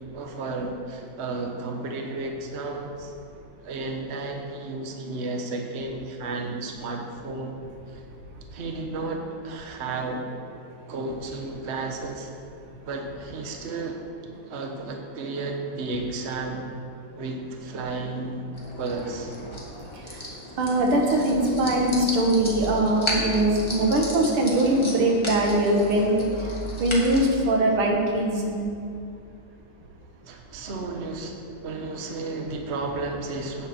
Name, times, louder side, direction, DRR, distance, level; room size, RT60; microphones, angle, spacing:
voice 1, 0.1-3.1 3.6-7.6 7.9-8.0 8.5-10.2 10.9-12.3 12.8-14.0 14.5-16.7 17.2-18.5 18.8-19.3 30.3-33.7, right 3 dB, 40° right, 2 dB, 1.2 m, -33 dB
sound 1, 18.5-27.3, equal, 15° left, 1.8 m, -34 dB
voice 2, 20.6-26.3 26.8-28.6, right 1 dB, 85° right, 0 dB, 2.5 m, -22 dB
13.5 x 9.4 x 4.4 m, 2.5 s
omnidirectional pair, 2.3 m